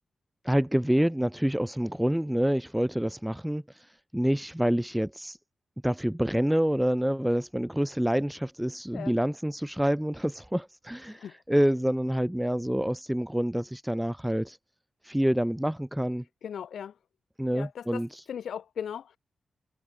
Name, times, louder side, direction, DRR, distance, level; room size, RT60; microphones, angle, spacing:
voice 1, 0.4-3.6 4.1-5.4 5.8-14.6 15.0-16.2 17.4-18.1, equal, 5° right, 1.6 m, -27 dB
voice 2, 16.4-16.9 17.5-18.0 18.3-19.2, left 8 dB, 75° left, 2.8 m, -37 dB
wide cardioid pair, 130°, 0 cm